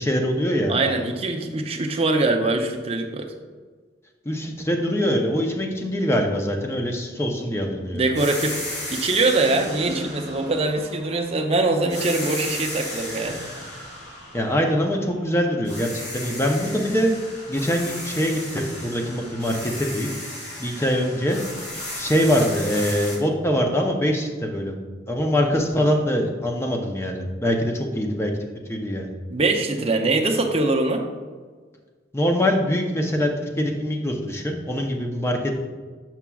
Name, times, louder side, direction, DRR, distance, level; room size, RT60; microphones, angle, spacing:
voice 1, 0.0-0.7 4.2-8.0 14.3-17.1 17.5-20.1 20.6-21.4 22.0-24.8 25.1-28.3 28.7-29.1 32.1-35.7, equal, 15° left, 3 dB, 0.5 m, -23 dB
voice 2, 0.7-3.3 7.9-13.6 29.3-31.0, right 2 dB, 30° right, 3 dB, 0.5 m, -23 dB
sound 1, 8.1-11.4 11.9-15.3 15.6-23.1, left 1 dB, 55° left, 1.8 m, -35 dB
7.1 x 5.9 x 2.3 m, 1.5 s
head